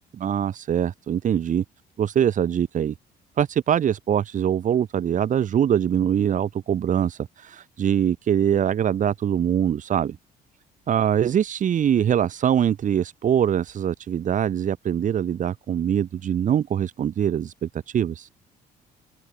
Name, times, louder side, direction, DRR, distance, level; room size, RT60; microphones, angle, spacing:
voice 1, 0.2-1.6 2.0-2.9 3.4-10.2 10.9-18.3, right 9 dB, 50° right, 2.4 m, -23 dB
open air
cardioid pair, 110°, 17 cm